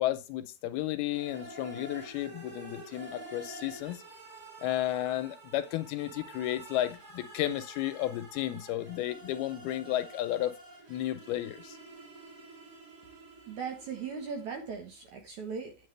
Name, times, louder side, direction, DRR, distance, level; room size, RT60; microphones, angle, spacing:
voice 1, 0.0-4.0 4.6-10.5 10.9-11.8, left 13 dB, 80° left, 2.5 m, -33 dB
sound 1, 1.1-14.9, right 2 dB, 30° right, 2.1 m, -49 dB
voice 2, 13.5-15.9, right 5 dB, 60° right, 2.1 m, -38 dB
9.2 x 7.3 x 3.2 m
omnidirectional pair, 4.7 m